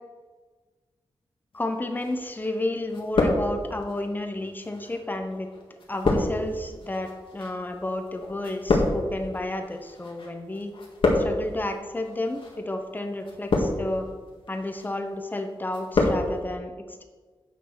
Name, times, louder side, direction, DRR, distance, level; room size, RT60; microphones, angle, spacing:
voice 1, 1.5-5.5 5.9-10.7 11.1-14.1 14.5-17.0, left 1 dB, 20° left, 5 dB, 0.9 m, -31 dB
Opening and closing of a book, 2.0-2.6 2.9-3.9 4.6-10.3 10.5-11.6 12.3-12.6 13.2-14.0 14.5-14.9 15.3-16.2 16.5-16.6, left 2 dB, 70° left, 1.9 m, -26 dB
8.5 x 6.2 x 6.0 m, 1.4 s
wide cardioid pair, 140°, 9 cm